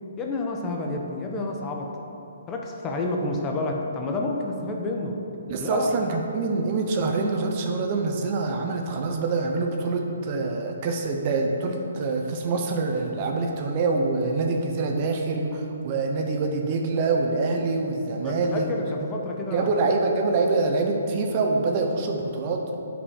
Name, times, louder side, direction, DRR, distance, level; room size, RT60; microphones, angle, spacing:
voice 1, 0.2-1.9 2.5-5.2 5.6-5.9 18.2-19.9, left 2 dB, 20° left, 1 dB, 0.9 m, -29 dB
voice 2, 5.5-18.7 19.5-22.6, right 3 dB, 35° right, 2 dB, 0.9 m, -25 dB
9.7 x 5.3 x 4.8 m, 2.9 s
hypercardioid pair, 140°, 0 cm